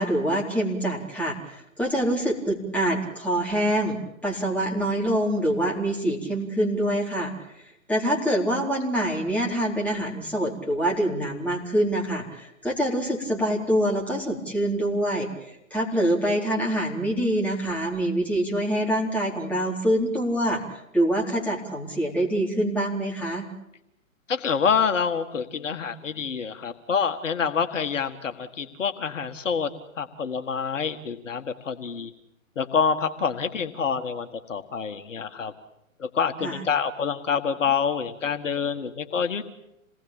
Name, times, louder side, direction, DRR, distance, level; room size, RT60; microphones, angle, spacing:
voice 1, 0.0-7.3 7.9-15.3 15.7-20.6 20.9-23.5 36.4-36.6, right 1 dB, 5° left, -2 dB, 4.0 m, -25 dB
voice 2, 24.3-29.7 30.0-32.1 32.5-35.5 36.0-39.5, left 6 dB, 65° left, 7 dB, 1.8 m, -27 dB
28.0 x 19.0 x 8.8 m, 0.84 s
figure-of-eight pair, 130°, 41 cm